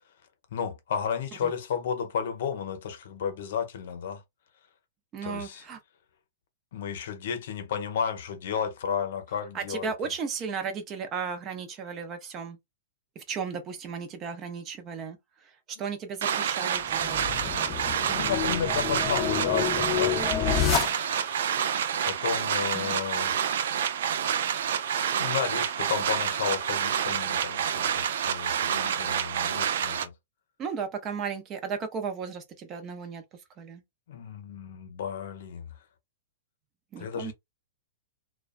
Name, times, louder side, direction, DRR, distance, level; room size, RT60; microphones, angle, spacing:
voice 1, 0.5-4.2 5.2-5.7 6.7-10.1 15.7-15.9 18.1-20.7 22.0-23.5 25.1-30.1 34.1-35.8 37.0-37.3, left 7 dB, 65° left, 0.6 m, -33 dB
voice 2, 5.1-5.8 9.6-12.6 13.2-15.2 15.8-17.2 22.7-23.0 30.6-33.2 33.6-33.8 36.9-37.3, right 6 dB, 30° right, 0.7 m, -35 dB
sound 1, 16.2-30.1, right 8 dB, 70° right, 0.3 m, -28 dB
sound 2, 16.8-21.4, left 9 dB, 25° left, 0.5 m, -29 dB
2.3 x 2.2 x 2.4 m
hypercardioid pair, 120°, 0 cm